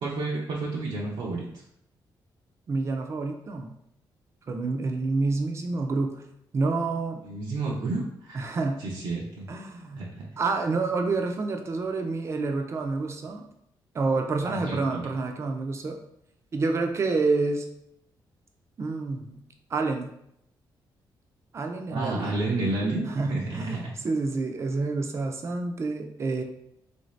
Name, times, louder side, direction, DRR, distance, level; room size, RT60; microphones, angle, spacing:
voice 1, 0.0-1.4 7.2-8.5 8.8-9.5 10.0-10.3 14.4-15.0 21.9-23.9, right 2 dB, 80° right, -5 dB, 0.7 m, -31 dB
voice 2, 2.7-3.7 4.5-6.2 6.5-7.2 8.3-8.8 9.5-10.0 10.4-13.5 13.9-16.0 16.5-17.6 18.8-19.4 19.7-20.1 21.5-22.5 23.1-26.4, right 3 dB, 35° right, 4 dB, 0.4 m, -28 dB
3.2 x 2.6 x 3.1 m, 0.75 s
cardioid pair, 140°, 8 cm